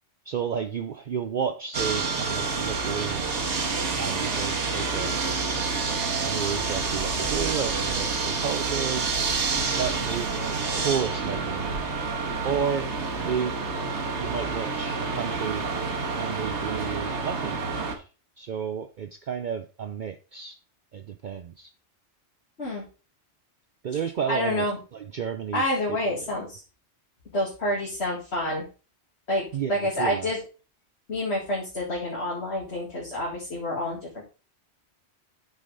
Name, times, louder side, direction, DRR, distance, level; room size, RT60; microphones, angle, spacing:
voice 1, 0.3-3.3 4.0-5.2 6.2-9.1 9.8-12.2 12.4-12.9 13.2-13.6 14.2-15.6 16.2-18.1 18.4-20.6 20.9-21.7 23.8-25.6 25.9-26.3 29.5-30.3, right 7 dB, 55° right, 8 dB, 0.6 m, -32 dB
sound 1, 1.7-17.9, right 4 dB, 80° right, 1.7 m, -28 dB
voice 2, 24.3-24.8 25.5-26.6 27.3-28.7 29.3-30.4 31.1-34.2, left 1 dB, 65° left, -5 dB, 2.3 m, -28 dB
9.2 x 5.0 x 3.9 m, 0.34 s
omnidirectional pair, 1.2 m